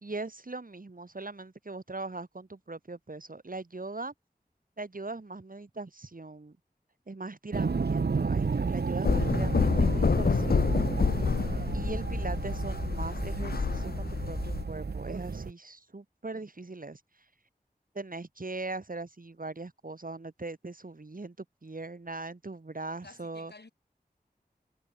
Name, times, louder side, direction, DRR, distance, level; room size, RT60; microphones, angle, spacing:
voice 1, 0.0-4.1 4.8-6.6 7.1-10.7 11.7-17.0 18.0-23.5, right 3 dB, 55° right, 1.8 m, -40 dB
sound 1, 7.5-15.5, right 4 dB, 80° right, 0.8 m, -32 dB
sound 2, 9.0-14.6, left 5 dB, 70° left, 0.5 m, -28 dB
voice 2, 23.0-23.7, left 3 dB, 85° left, 2.7 m, -54 dB
wide cardioid pair, 45°, 17 cm